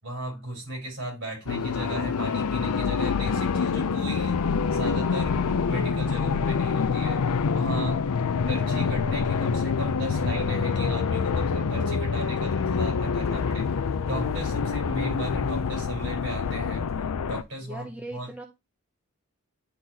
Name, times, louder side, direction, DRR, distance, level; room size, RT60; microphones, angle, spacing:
voice 1, 0.0-5.4 5.7-7.2 7.5-8.0 8.5-13.7 14.0-16.8 17.2-17.9 18.1-18.3, right 1 dB, 55° right, 4.6 m, -35 dB
sound 1, 1.5-17.4, left 5 dB, 80° left, 0.5 m, -26 dB
sound 2, 12.6-16.9, equal, 30° left, 1.1 m, -46 dB
voice 2, 17.6-18.5, right 1 dB, 5° right, 0.6 m, -39 dB
10.0 x 4.0 x 2.7 m
head